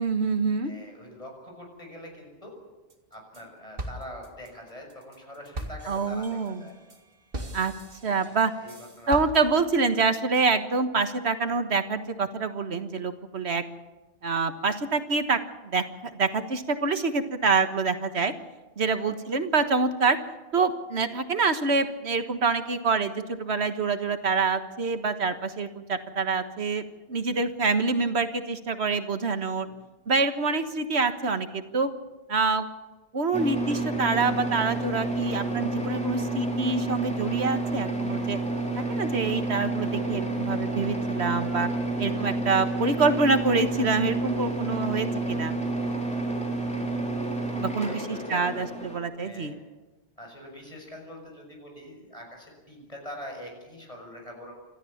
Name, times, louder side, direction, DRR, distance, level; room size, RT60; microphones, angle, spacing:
voice 1, 0.0-0.7 5.9-6.6 7.5-7.7 8.0-8.5 9.1-13.6 14.2-18.3 18.8-20.2 20.5-26.8 27.1-29.7 30.1-31.9 32.3-32.7 33.1-38.4 38.8-41.7 42.0-45.5 47.6-49.5, right 4 dB, 90° right, 9 dB, 1.7 m, -26 dB
voice 2, 0.6-2.6 3.1-6.8 8.1-9.5 18.8-19.2 29.7-29.8 41.7-41.9 47.4-48.5 49.1-49.6 50.2-54.5, left 1 dB, 35° left, 1 dB, 6.6 m, -44 dB
sound 1, 2.9-3.4 3.8-9.8, right 1 dB, 60° right, 2.3 m, -40 dB
sound 2, 33.3-49.0, right 2 dB, 5° left, 3.4 m, -29 dB
28.0 x 14.0 x 7.3 m, 1.2 s
omnidirectional pair, 1.1 m